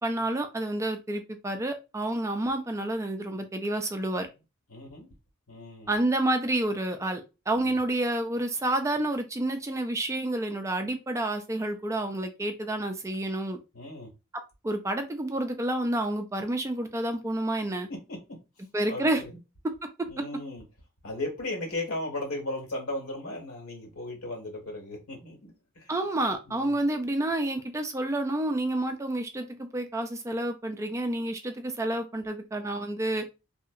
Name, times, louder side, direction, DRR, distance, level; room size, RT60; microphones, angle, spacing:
voice 1, 0.0-4.3 5.9-13.6 14.6-17.9 18.7-19.2 25.9-33.2, right 1 dB, 15° right, 6 dB, 0.3 m, -29 dB
voice 2, 4.7-5.1 5.5-6.0 7.6-7.8 13.7-14.1 18.1-18.2 18.9-19.4 20.1-20.6 21.0-25.9 26.5-26.8, left 2 dB, 85° left, -1 dB, 1.6 m, -36 dB
2.7 x 2.6 x 2.4 m, 0.27 s
head